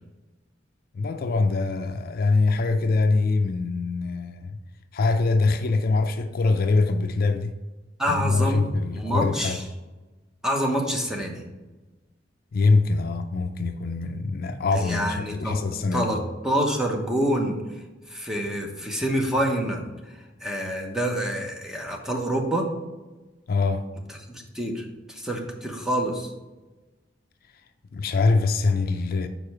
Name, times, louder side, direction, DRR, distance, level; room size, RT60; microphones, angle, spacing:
voice 1, 0.9-4.6 4.9-7.5 8.0-9.6 12.5-16.2 23.5-23.9 27.9-29.3, left 3 dB, 55° left, 0.4 m, -23 dB
voice 2, 8.0-8.7 8.9-9.6 10.4-11.4 14.7-15.6 15.9-16.2 16.4-17.6 18.1-19.9 20.4-22.7 24.5-26.3, equal, 5° right, 0.9 m, -26 dB
5.0 x 4.6 x 5.9 m
head